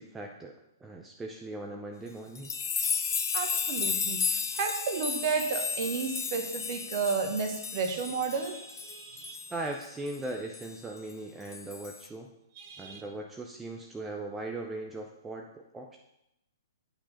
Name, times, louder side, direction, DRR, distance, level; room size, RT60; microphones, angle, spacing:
voice 1, 0.0-2.5 9.5-12.3 12.8-16.0, right 2 dB, 10° right, 1 dB, 0.5 m, -39 dB
sound 1, 2.3-10.2 10.5-10.7 11.5-12.1, left 6 dB, 60° left, 0.5 m, -33 dB
voice 2, 3.3-9.4 12.6-13.0, right 5 dB, 40° right, 5 dB, 1.1 m, -32 dB
8.8 x 4.7 x 5.2 m, 0.85 s
figure-of-eight pair, 120°, 2 cm